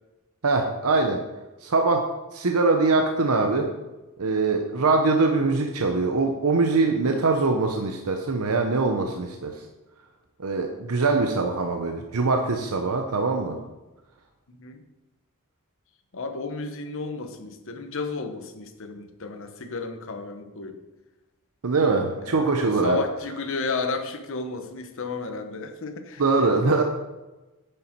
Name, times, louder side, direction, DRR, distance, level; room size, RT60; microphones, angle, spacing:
voice 1, 0.4-1.2 1.6-3.7 4.2-9.5 10.4-13.6 21.6-23.0 26.2-26.8, right 3 dB, 85° right, 4 dB, 0.8 m, -23 dB
voice 2, 14.5-14.8 16.1-20.8 22.2-22.5 22.8-26.2, left 4 dB, 65° left, 7 dB, 1.0 m, -33 dB
9.5 x 6.8 x 4.5 m, 1.1 s
head